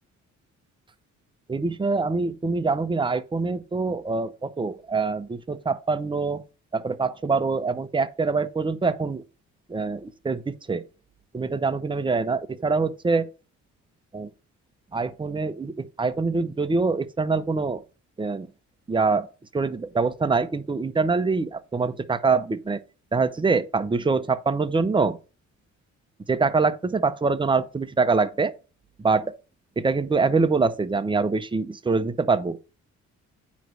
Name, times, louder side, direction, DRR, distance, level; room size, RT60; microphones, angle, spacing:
voice 1, 1.5-6.4 6.7-9.2 9.7-10.9 11.3-13.3 14.1-14.3 14.9-17.8 18.2-18.5 18.9-22.8 23.1-25.2 26.3-28.5 29.0-29.3 29.8-32.6, right 4 dB, 15° right, 0.7 m, -24 dB
9.3 x 3.2 x 6.2 m
cardioid pair, 90°, 30 cm